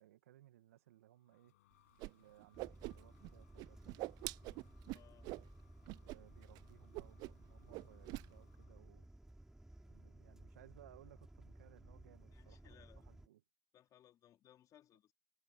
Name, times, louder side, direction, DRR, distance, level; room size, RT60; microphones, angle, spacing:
voice 1, 0.0-1.5 2.0-3.8 6.0-9.1 9.9-13.4, right 13 dB, 85° right, 2.0 m, -64 dB
sound 1, 0.8-8.8, left 16 dB, 80° left, 7.5 m, -75 dB
Whoosh swoosh swish, 2.0-2.1 2.4-3.3 3.6-5.5 5.9-6.2 6.4-6.6 6.9-7.5 7.7-8.3, right 22 dB, 60° right, 0.4 m, -45 dB
sound 2, 2.5-13.3, right 1 dB, 5° right, 4.1 m, -58 dB
voice 2, 4.9-5.3 12.3-13.1 13.7-15.1, left 11 dB, 50° left, 3.8 m, -65 dB
hypercardioid pair, 85°, 8 cm